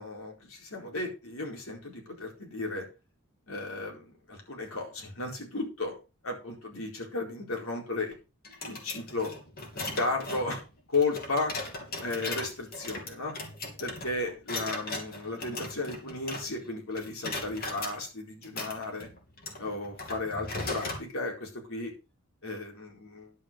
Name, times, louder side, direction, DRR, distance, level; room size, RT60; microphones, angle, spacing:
voice 1, 0.0-2.9 3.5-6.0 6.2-8.2 8.7-9.3 9.7-10.6 10.9-11.5 12.0-13.3 13.8-19.1 19.6-21.9 22.4-23.3, left 3 dB, 75° left, 0 dB, 4.4 m, -34 dB
sound 1, 8.4-16.7 17.0-18.0 18.4-21.1, left 2 dB, 45° left, 2.7 m, -38 dB
11.0 x 5.0 x 6.8 m, 0.30 s
head